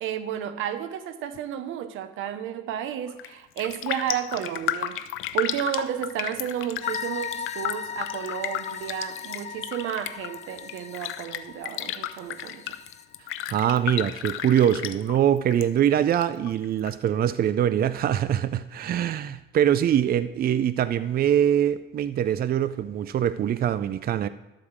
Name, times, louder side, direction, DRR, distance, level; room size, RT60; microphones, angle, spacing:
voice 1, 0.0-5.1 5.3-12.7, right 10 dB, 90° right, 11 dB, 0.8 m, -32 dB
Raindrop, 3.1-3.3 3.6-15.6 15.9-16.9 17.3-17.4, left 12 dB, 90° left, 0.5 m, -33 dB
sound 1, 6.8-13.0, left 6 dB, 35° left, 0.6 m, -38 dB
voice 2, 13.5-24.3, right 10 dB, 50° right, 14 dB, 0.4 m, -23 dB
12.5 x 4.9 x 7.3 m, 1.0 s
cardioid pair, 90°, 20 cm